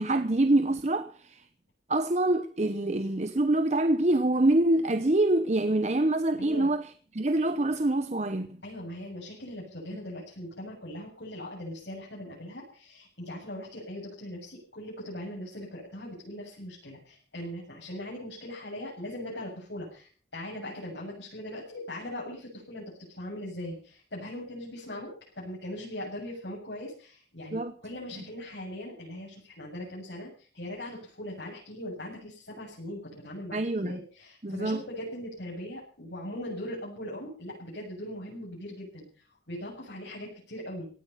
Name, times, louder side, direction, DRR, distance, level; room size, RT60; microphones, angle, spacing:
voice 1, 0.0-1.4 1.9-6.8 7.1-8.6 27.5-27.7 33.5-34.0 34.4-34.8, right 2 dB, 40° right, 0.8 m, -25 dB
voice 2, 6.4-6.7 8.6-40.9, left 1 dB, 80° left, 8.0 m, -40 dB
17.5 x 13.0 x 5.8 m
head